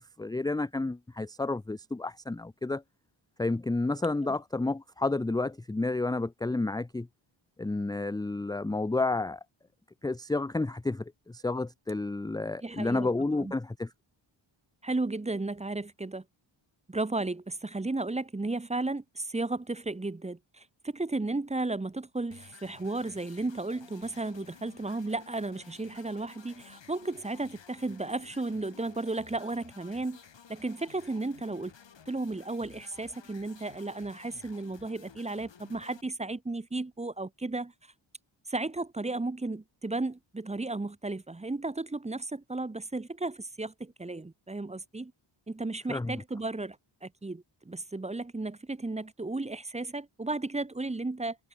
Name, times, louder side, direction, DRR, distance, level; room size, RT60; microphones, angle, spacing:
voice 1, 0.0-2.8 3.4-7.1 7.6-9.4 10.0-13.9 45.9-46.2, left 2 dB, 10° left, 0.4 m, -30 dB
voice 2, 12.6-13.5 14.8-16.2 16.9-30.2 30.5-31.7 32.1-37.7 38.5-45.1 45.5-46.8 47.0-51.4, right 2 dB, 15° right, 0.8 m, -34 dB
sound 1, 22.3-36.0, left 7 dB, 60° left, 5.5 m, -54 dB
wide cardioid pair, 175°, 48 cm